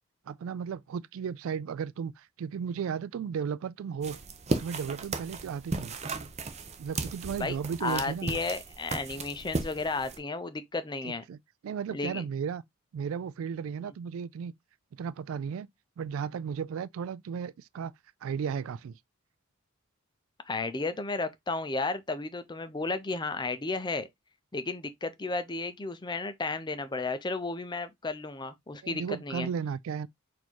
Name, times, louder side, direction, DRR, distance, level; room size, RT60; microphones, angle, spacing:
voice 1, 0.3-4.2 4.6-6.0 6.8-8.4 11.0-11.4 11.6-12.6 12.9-14.5 15.0-15.7 16.0-17.9 18.2-19.0 28.8-30.1, right 7 dB, 70° right, 0.3 m, -35 dB
sound 1, 4.0-10.2, right 3 dB, 30° right, 0.6 m, -35 dB
voice 2, 7.4-11.2 11.9-12.2 20.5-24.1 24.5-29.5, left 3 dB, 20° left, 0.5 m, -33 dB
4.4 x 2.6 x 4.4 m
head